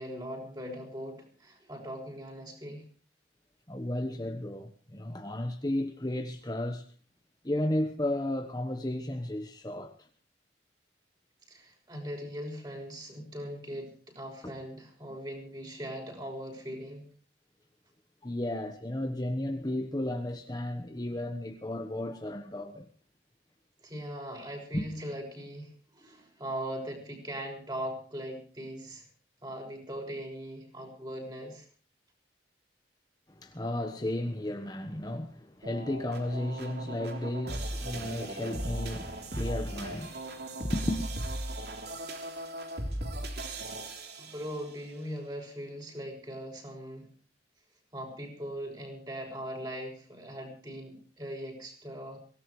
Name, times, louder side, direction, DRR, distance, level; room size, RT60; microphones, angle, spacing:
voice 1, 0.0-2.9 11.5-17.1 23.8-29.1 29.4-31.7 42.3-42.5 44.1-47.1 47.9-52.2, equal, 25° right, 6.4 m, -40 dB
voice 2, 3.7-6.8 7.4-10.1 14.4-14.6 18.2-22.9 24.7-24.8 33.3-41.2, left 1 dB, 20° left, 1.3 m, -34 dB
sound 1, 35.6-44.9, right 1 dB, 65° right, 3.5 m, -37 dB
24.0 x 18.0 x 3.2 m
head